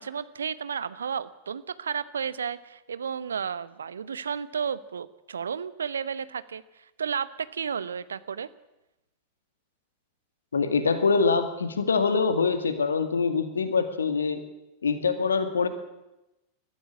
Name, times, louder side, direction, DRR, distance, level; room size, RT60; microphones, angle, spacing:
voice 1, 0.0-8.5, right 7 dB, 70° right, 16 dB, 0.9 m, -33 dB
voice 2, 10.5-14.4 14.8-15.7, left 5 dB, 70° left, 10 dB, 2.1 m, -24 dB
21.5 x 14.5 x 8.6 m, 0.96 s
figure-of-eight pair, 90°, 0 cm